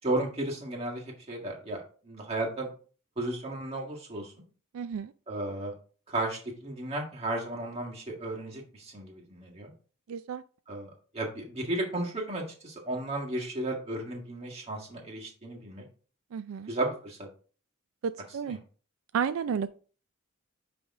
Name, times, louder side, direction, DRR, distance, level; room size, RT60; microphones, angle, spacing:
voice 1, 0.0-2.7 3.2-4.3 5.3-5.7 6.1-9.7 10.7-15.8 16.7-17.3 18.5-18.6, right 1 dB, 30° right, 1.8 m, -34 dB
voice 2, 4.7-5.1 10.1-10.4 16.3-16.7 18.0-18.6 19.1-19.7, right 7 dB, 80° right, 0.3 m, -32 dB
10.0 x 3.4 x 3.6 m
head